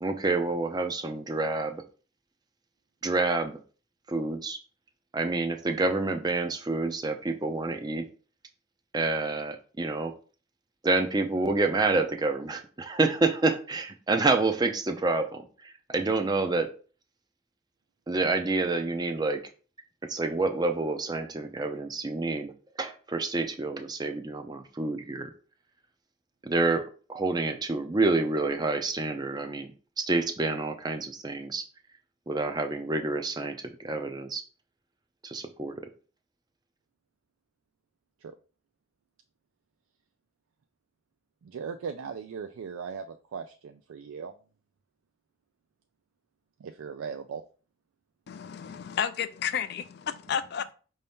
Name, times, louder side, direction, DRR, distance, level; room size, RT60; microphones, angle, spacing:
voice 1, 0.0-1.8 3.0-3.6 4.1-4.6 5.1-8.0 8.9-10.1 10.8-16.7 18.1-19.4 20.1-22.5 22.8-25.3 26.4-26.8 27.1-29.7 30.0-31.6 32.3-34.4 35.2-35.9, right 3 dB, 20° right, 0.4 m, -28 dB
voice 2, 41.4-44.3 46.6-47.4, right 6 dB, 85° right, 0.3 m, -38 dB
voice 3, 48.3-50.7, left 8 dB, 50° left, 0.3 m, -32 dB
5.5 x 2.7 x 3.4 m
head